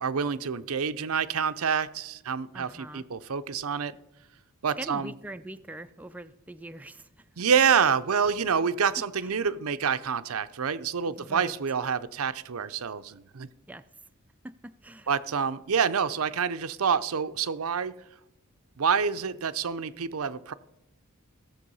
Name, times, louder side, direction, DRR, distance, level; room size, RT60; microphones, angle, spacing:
voice 1, 0.0-4.0 4.6-5.1 7.4-13.5 15.1-17.9 18.8-20.5, right 6 dB, 80° right, 12 dB, 0.6 m, -27 dB
voice 2, 2.5-3.0 4.8-7.3 9.2-9.3 11.2-11.6 13.7-13.8 14.4-15.1, right 1 dB, 5° right, 9 dB, 0.4 m, -42 dB
16.0 x 7.3 x 5.5 m, 0.87 s
head